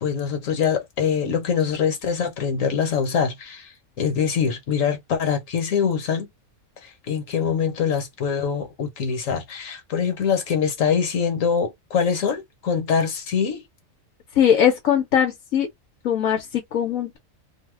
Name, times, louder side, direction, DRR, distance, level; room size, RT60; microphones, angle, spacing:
voice 1, 0.0-3.7 4.0-6.3 6.8-13.6, left 6 dB, 75° left, 1.4 m, -24 dB
voice 2, 14.4-15.7 16.0-17.2, left 9 dB, 90° left, 1.2 m, -20 dB
2.7 x 2.2 x 3.3 m
omnidirectional pair, 1.4 m